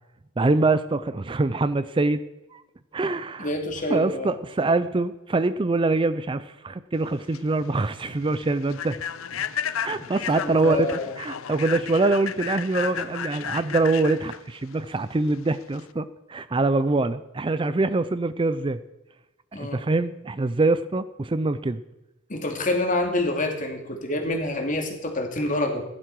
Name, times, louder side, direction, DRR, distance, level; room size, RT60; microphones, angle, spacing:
voice 1, 0.4-2.2 2.5-2.6 2.9-3.5 3.9-8.9 9.8-18.8 19.6-21.8, right 3 dB, 25° right, 13 dB, 0.4 m, -24 dB
voice 2, 3.4-4.3 10.4-11.1 19.5-19.8 22.3-25.8, left 1 dB, 40° left, 4 dB, 2.3 m, -27 dB
Human voice / Train, 7.0-15.9, left 8 dB, 85° left, 0.6 m, -34 dB
16.0 x 11.5 x 4.7 m, 0.99 s
head